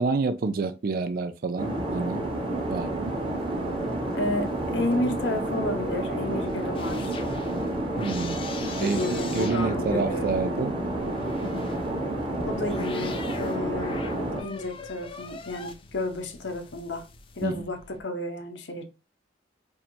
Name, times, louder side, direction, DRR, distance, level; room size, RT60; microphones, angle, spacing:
voice 1, 0.0-2.3 2.7-3.1 8.0-8.4 8.8-10.7 17.4-17.6, right 4 dB, 50° right, 0.4 m, -28 dB
sound 1, 1.6-14.4, right 1 dB, 30° right, 0.9 m, -30 dB
sound 2, 2.5-18.0, left 4 dB, 30° left, 0.4 m, -43 dB
voice 2, 4.1-7.2 8.8-10.3 12.4-14.0 14.4-17.0 17.4-18.8, left 2 dB, 80° left, 0.8 m, -31 dB
4.3 x 2.8 x 2.6 m
head